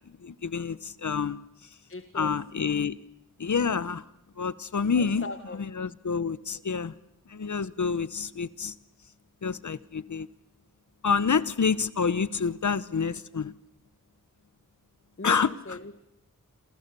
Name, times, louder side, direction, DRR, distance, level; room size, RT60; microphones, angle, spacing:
voice 1, 0.2-1.4 2.1-3.0 3.4-4.0 4.4-5.3 5.5-6.9 7.3-8.7 9.4-10.3 11.0-13.5 15.2-15.5, left 5 dB, 60° left, 17 dB, 1.0 m, -28 dB
voice 2, 1.9-2.3 4.9-5.6 6.5-6.6 15.2-16.1, left 3 dB, 40° left, 9 dB, 1.4 m, -39 dB
28.0 x 27.5 x 6.9 m, 0.86 s
wide cardioid pair, 85°, 33 cm